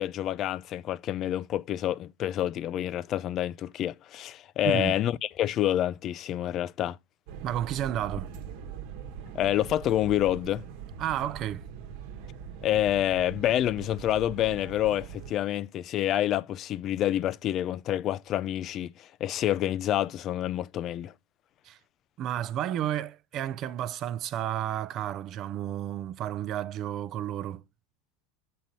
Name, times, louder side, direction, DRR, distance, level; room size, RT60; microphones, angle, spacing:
voice 1, 0.0-7.0 9.3-10.6 12.6-21.1, left 12 dB, 35° left, 0.4 m, -28 dB
voice 2, 4.6-5.0 7.4-8.3 11.0-11.6 21.6-21.8 22.2-27.6, right 11 dB, 40° right, 0.5 m, -32 dB
sound 1, 7.3-15.3, right 8 dB, 65° right, 1.2 m, -42 dB
7.5 x 4.3 x 5.1 m
supercardioid pair, 135°, 0 cm